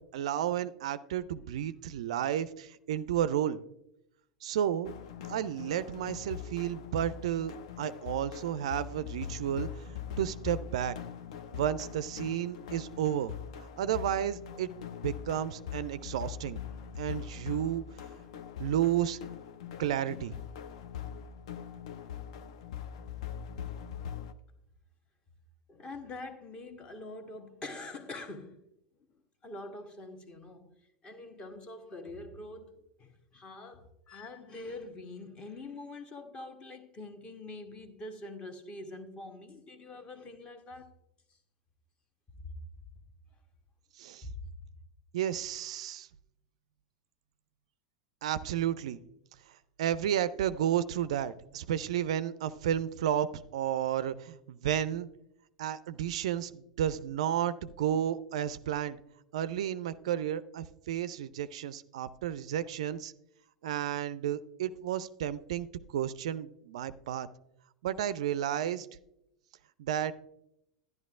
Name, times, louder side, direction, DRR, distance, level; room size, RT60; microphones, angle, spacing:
voice 1, 0.1-3.6 4.4-4.9 5.3-9.7 10.2-10.9 11.5-13.3 13.8-14.7 15.0-16.6 17.0-17.8 18.6-19.2 19.8-20.3 44.0-44.2 45.1-46.1 48.2-49.0 49.8-53.3 53.5-55.1 55.6-59.0 59.3-63.1 63.6-65.7 65.9-67.3 67.8-68.9 69.8-70.1, right 10 dB, 60° right, 0.4 m, -32 dB
sound 1, 4.8-24.3, left 8 dB, 55° left, 0.6 m, -42 dB
voice 2, 25.7-28.6 29.4-30.7 31.0-40.9 42.4-42.5 44.2-44.4, left 2 dB, 25° left, 1.1 m, -45 dB
12.0 x 10.5 x 2.4 m
figure-of-eight pair, 85°, 4 cm